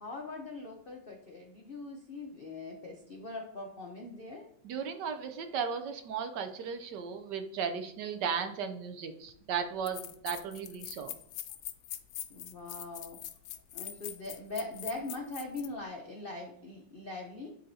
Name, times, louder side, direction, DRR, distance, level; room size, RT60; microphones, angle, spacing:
voice 1, 0.0-4.5 12.3-13.2 13.7-17.5, left 2 dB, 60° left, 0 dB, 0.6 m, -41 dB
voice 2, 4.6-11.1, right 6 dB, 70° right, 7 dB, 1.1 m, -36 dB
sound 1, 9.3-9.4 9.9-15.7, left 12 dB, 80° left, 1.3 m, -43 dB
11.0 x 3.8 x 2.7 m, 0.67 s
omnidirectional pair, 2.1 m